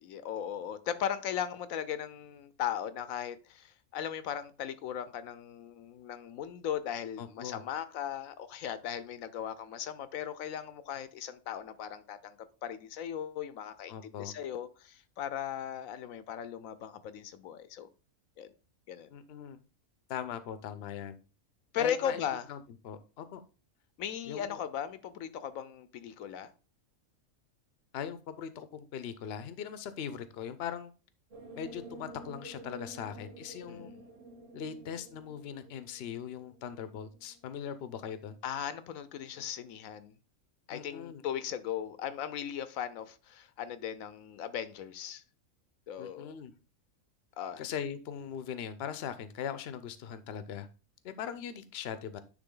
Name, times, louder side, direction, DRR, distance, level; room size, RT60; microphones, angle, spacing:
voice 1, 0.0-17.9 18.4-18.5 18.9-19.1 21.7-22.5 24.0-26.5 33.6-34.0 38.4-40.1 40.7-45.2 45.9-46.3 47.4-47.6, left 9 dB, 80° left, 1.1 m, -37 dB
voice 2, 7.2-7.6 13.9-14.3 19.1-19.6 20.1-21.2 21.8-22.2 22.5-22.6 22.8-23.4 24.3-24.6 27.9-30.9 31.5-33.9 34.5-38.4 40.7-41.2 46.0-46.5 47.6-50.7 51.0-52.2, left 8 dB, 55° left, 0.8 m, -40 dB
sound 1, 31.3-37.7, right 2 dB, 30° right, 1.0 m, -50 dB
9.8 x 3.5 x 3.7 m
omnidirectional pair, 1.4 m